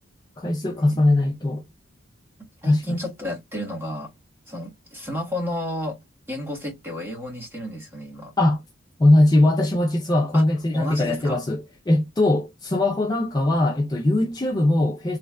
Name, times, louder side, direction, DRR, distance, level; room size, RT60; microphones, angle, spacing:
voice 1, 0.4-1.6 2.7-2.8 8.4-8.6 9.0-15.2, left 1 dB, 20° left, 0.4 m, -20 dB
voice 2, 2.6-4.2 4.5-6.0 6.3-8.3 10.3-10.4 10.7-11.4, left 1 dB, 10° right, 1.2 m, -32 dB
3.1 x 2.4 x 3.2 m
head